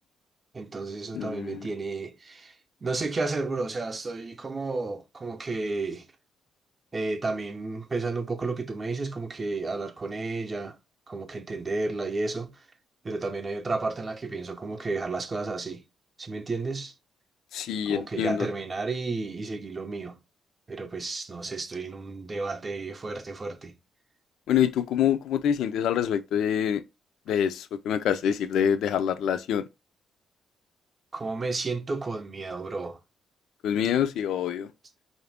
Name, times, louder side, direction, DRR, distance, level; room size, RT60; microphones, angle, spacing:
voice 1, 0.5-2.6 2.8-6.1 6.9-10.8 11.1-12.6 13.0-15.8 16.2-16.9 17.9-20.2 20.7-23.7 31.1-33.0, right 3 dB, 25° right, 0.6 m, -32 dB
voice 2, 1.1-1.7 17.5-18.5 24.5-26.8 27.3-29.6 33.6-34.7, left 9 dB, 75° left, 0.5 m, -26 dB
4.9 x 2.6 x 3.4 m
cardioid pair, 150°, 0 cm